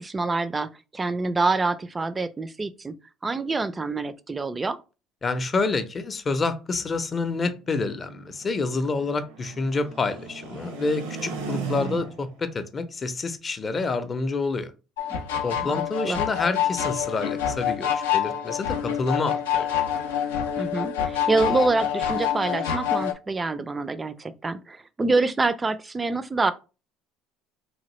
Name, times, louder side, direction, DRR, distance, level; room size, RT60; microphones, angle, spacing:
voice 1, 0.0-2.9 3.2-4.8 15.1-15.2 15.6-16.2 20.6-26.5, right 3 dB, 25° right, 0.3 m, -26 dB
voice 2, 5.2-14.7 15.4-19.7, left 3 dB, 35° left, 0.5 m, -28 dB
sound 1, 7.1-12.4, right 5 dB, 90° right, 0.7 m, -37 dB
sound 2, 15.0-23.1, left 9 dB, 90° left, 0.4 m, -27 dB
3.0 x 2.5 x 3.0 m
hypercardioid pair, 75°, 0 cm